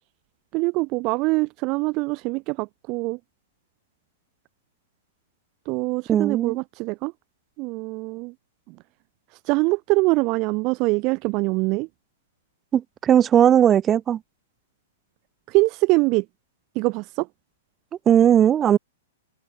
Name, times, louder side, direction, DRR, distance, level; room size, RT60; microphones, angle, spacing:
voice 1, 0.5-3.2 5.7-7.1 7.6-8.3 8.7-8.8 9.5-11.9 15.5-16.3 16.8-17.3, right 25 dB, 40° right, 2.1 m, -23 dB
voice 2, 6.1-6.6 12.7-14.2 18.1-18.8, right 9 dB, 25° right, 2.5 m, -17 dB
figure-of-eight pair, 105°, 0 cm